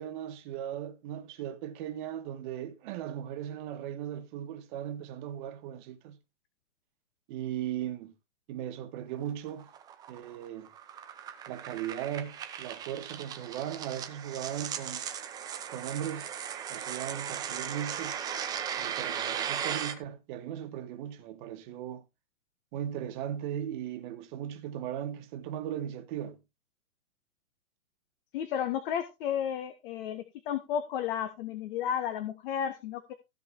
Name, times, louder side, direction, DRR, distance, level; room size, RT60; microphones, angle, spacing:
voice 1, 0.0-6.2 7.3-8.1 8.5-9.7 10.1-10.7 11.5-15.1 15.7-16.3 16.7-18.2 18.8-22.0 22.7-26.4, right 10 dB, 35° right, 1.6 m, -37 dB
sound 1, 9.2-19.9, right 8 dB, 10° right, 0.6 m, -37 dB
voice 2, 28.3-33.1, left 9 dB, 35° left, 1.4 m, -33 dB
15.5 x 5.3 x 4.6 m
hypercardioid pair, 135°, 44 cm